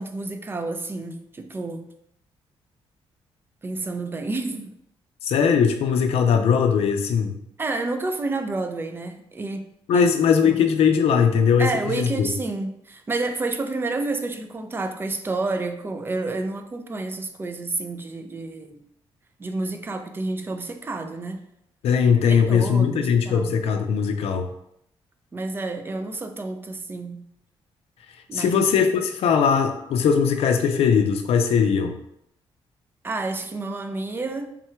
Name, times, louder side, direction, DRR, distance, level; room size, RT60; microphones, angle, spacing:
voice 1, 0.0-1.9 3.6-4.7 7.6-9.7 9.9-10.1 10.4-10.6 11.6-18.8 19.4-21.4 22.2-23.6 25.3-27.2 28.3-28.6 33.0-34.5, right 3 dB, 20° right, 6 dB, 0.4 m, -30 dB
voice 2, 5.2-7.4 9.9-12.3 21.8-24.5 28.3-31.9, left 6 dB, 80° left, 6 dB, 0.5 m, -20 dB
3.7 x 2.3 x 4.3 m, 0.77 s
cardioid pair, 130°, 10 cm